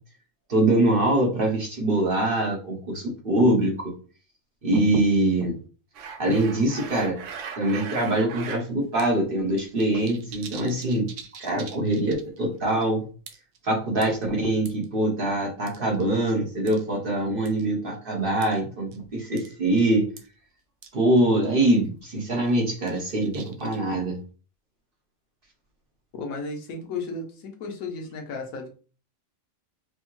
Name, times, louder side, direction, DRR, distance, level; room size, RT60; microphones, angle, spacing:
voice 1, 0.5-3.9 4.6-5.6 6.2-7.2 7.6-11.1 11.4-13.0 13.6-20.1 20.9-24.2, right 1 dB, 45° right, 0 dB, 1.1 m, -23 dB
sound 1, 5.9-8.6 9.0-9.1 9.4-12.4 12.7-12.8 13.3-13.6 14.0-14.9 15.7-16.3 16.7-16.8 17.5-17.6 18.4-18.6 18.9-19.0 19.4-19.5 19.8-19.9 20.2-20.3 20.8-20.9 21.2-21.3 21.6-21.9 22.3-23.9, right 6 dB, 70° right, 0.9 m, -40 dB
voice 2, 26.1-28.7, left 3 dB, 90° left, 2 dB, 1.2 m, -34 dB
4.5 x 2.1 x 3.0 m, 0.37 s
omnidirectional pair, 1.4 m